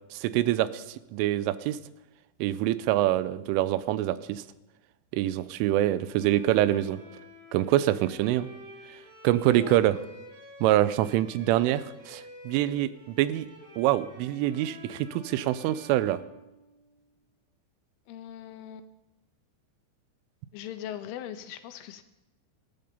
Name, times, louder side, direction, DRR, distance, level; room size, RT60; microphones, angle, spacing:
voice 1, 0.1-1.8 2.4-4.4 5.1-7.0 7.5-8.5 9.2-10.0 10.6-13.5 13.8-16.2, right 14 dB, 85° right, 15 dB, 3.2 m, -25 dB
Bowed string instrument, 6.0-17.0, equal, 65° right, 7.0 m, -50 dB
voice 2, 18.1-18.9 20.5-22.0, left 11 dB, 80° left, 10 dB, 3.5 m, -40 dB
19.0 x 13.5 x 5.4 m, 0.97 s
omnidirectional pair, 5.7 m